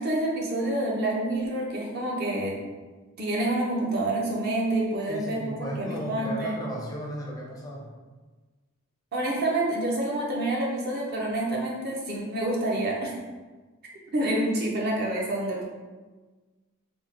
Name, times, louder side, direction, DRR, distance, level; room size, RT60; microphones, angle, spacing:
voice 1, 0.0-2.6 3.2-6.6 9.1-13.1 14.1-15.6, right 1 dB, 50° right, -2 dB, 0.6 m, -28 dB
voice 2, 5.1-7.9, equal, 15° left, -3 dB, 0.4 m, -35 dB
3.5 x 2.1 x 2.8 m, 1.3 s
head